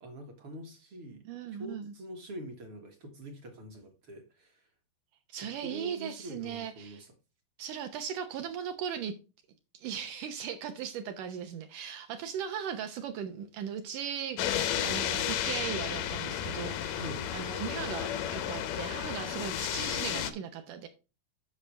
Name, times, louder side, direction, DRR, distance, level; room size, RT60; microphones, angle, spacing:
voice 1, 0.0-1.2 1.5-4.7 5.6-7.1 16.9-17.3, equal, 55° right, 1.6 m, -44 dB
voice 2, 1.3-1.9 5.3-7.0 7.6-9.1 9.7-17.0 17.3-20.9, right 8 dB, 70° right, 2.0 m, -38 dB
sound 1, 14.4-20.3, left 10 dB, 85° left, 1.6 m, -32 dB
10.0 x 6.0 x 3.2 m
omnidirectional pair, 4.5 m